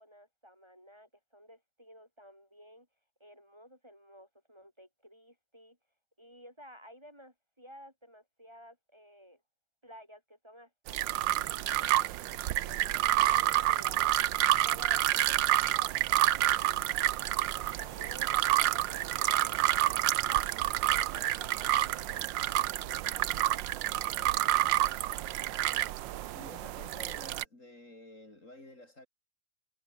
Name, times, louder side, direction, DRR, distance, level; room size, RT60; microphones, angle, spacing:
voice 1, 0.0-2.9 3.2-5.8 6.2-9.4 9.8-14.2 14.6-20.5 20.9-25.7, equal, 15° right, 6.9 m, -54 dB
sound 1, 10.9-27.4, right 14 dB, 80° right, 1.4 m, -29 dB
voice 2, 26.3-29.1, left 1 dB, 40° left, 5.8 m, -51 dB
omnidirectional pair, 2.0 m